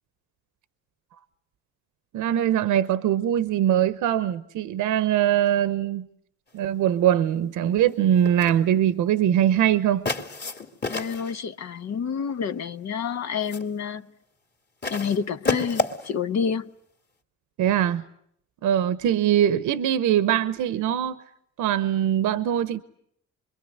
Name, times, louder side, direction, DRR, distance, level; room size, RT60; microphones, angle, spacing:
voice 1, 2.1-6.1 6.5-10.1 17.6-18.0 18.6-21.2 21.6-22.8, right 10 dB, 85° right, 1.0 m, -22 dB
sound 1, 8.2-8.6 10.0-11.4 12.4-12.8 13.2-13.7 14.8-16.1, left 3 dB, 35° left, 2.9 m, -30 dB
voice 2, 10.9-14.1 14.9-16.6, left 6 dB, 60° left, 1.2 m, -28 dB
26.0 x 22.5 x 9.4 m
cardioid pair, 90°, 30 cm